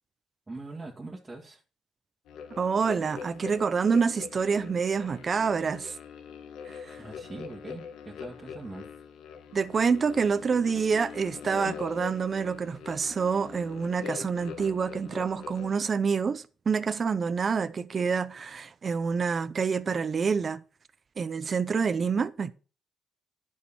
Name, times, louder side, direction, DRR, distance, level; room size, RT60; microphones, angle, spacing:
voice 1, 0.5-1.6 7.0-9.0, right 2 dB, 20° right, 2.3 m, -42 dB
sound 1, 2.3-15.8, left 7 dB, 90° left, 1.4 m, -43 dB
voice 2, 2.5-5.9 6.7-7.0 9.5-20.6 21.2-22.5, right 5 dB, 40° right, 0.7 m, -27 dB
10.5 x 6.5 x 4.3 m
cardioid pair, 90°, 0 cm